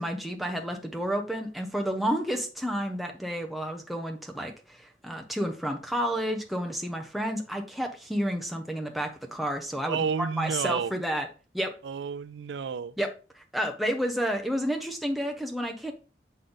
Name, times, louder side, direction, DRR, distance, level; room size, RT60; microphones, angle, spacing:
voice 1, 0.0-11.3 11.5-11.7 13.0-13.1 13.4-15.9, equal, ahead, 0.8 m, -30 dB
voice 2, 9.9-10.9 11.8-12.9, right 6 dB, 85° right, 0.4 m, -31 dB
6.3 x 4.0 x 3.8 m
head